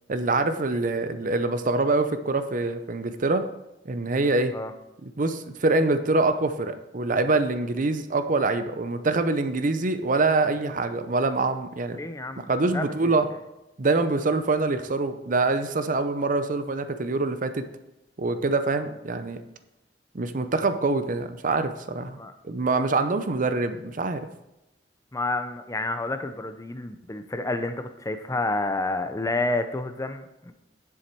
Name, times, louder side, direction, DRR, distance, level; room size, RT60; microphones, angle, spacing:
voice 1, 0.1-3.5 3.9-4.5 5.2-12.0 12.5-13.3 13.8-17.6 18.2-19.4 20.1-22.2 22.4-24.3, right 3 dB, 45° right, 10 dB, 0.7 m, -25 dB
voice 2, 11.9-13.4 22.1-22.3 25.1-30.5, left 2 dB, 20° left, 9 dB, 0.6 m, -30 dB
9.6 x 7.2 x 4.6 m, 0.92 s
head